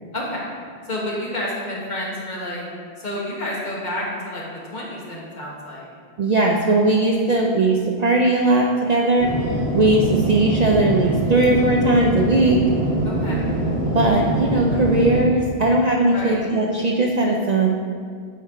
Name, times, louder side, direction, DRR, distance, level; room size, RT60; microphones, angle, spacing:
voice 1, 0.1-0.5 0.9-2.7 3.0-4.4 4.7-5.9 13.0-13.5 16.1-16.5, left 1 dB, 45° left, -4 dB, 1.4 m, -29 dB
voice 2, 6.2-12.7 13.9-17.8, right 2 dB, 55° right, -1 dB, 0.5 m, -19 dB
sound 1, 9.2-15.3, right 1 dB, 75° right, 1.7 m, -23 dB
8.1 x 4.4 x 3.6 m, 2.1 s
omnidirectional pair, 1.1 m